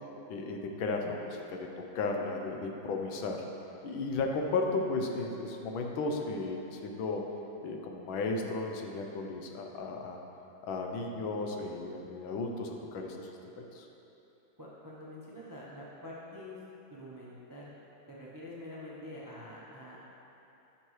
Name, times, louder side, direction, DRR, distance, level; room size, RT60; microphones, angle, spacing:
voice 1, 0.3-3.4 3.8-7.2 7.6-10.2 10.6-13.3 13.5-13.9, left 3 dB, 85° left, 2 dB, 1.5 m, -34 dB
voice 2, 14.6-16.6 16.9-17.7 18.1-20.0, left 1 dB, 25° right, -6 dB, 0.4 m, -46 dB
12.0 x 6.0 x 3.2 m, 3.0 s
omnidirectional pair, 2.1 m